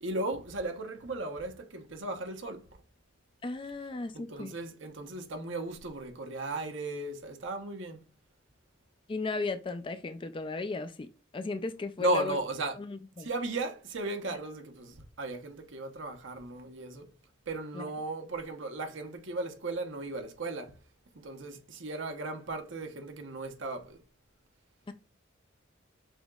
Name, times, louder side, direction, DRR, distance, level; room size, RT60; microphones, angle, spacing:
voice 1, 0.0-2.7 4.1-8.0 12.0-12.8 13.2-17.1 17.5-20.8 21.1-24.0, right 2 dB, 70° right, 1.0 m, -36 dB
voice 2, 3.4-4.5 9.1-11.1 11.3-12.4 12.8-13.3 17.7-17.8 24.9-25.0, left 3 dB, 25° left, 0.4 m, -35 dB
6.1 x 2.9 x 2.3 m
head